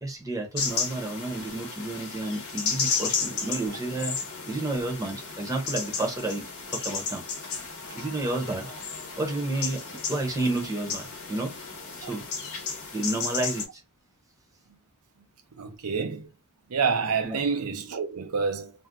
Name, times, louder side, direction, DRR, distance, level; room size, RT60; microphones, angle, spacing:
voice 1, 0.0-4.2 4.5-7.2 7.9-8.7 9.2-9.8 10.1-11.7 12.1-12.2 12.9-13.8 17.2-17.4, right 2 dB, 15° right, 0.8 m, -31 dB
sound 1, 0.6-13.6, left 5 dB, 70° left, 0.8 m, -33 dB
voice 2, 15.6-16.3 16.7-18.7, right 5 dB, 85° right, 0.7 m, -28 dB
2.6 x 2.2 x 3.4 m
head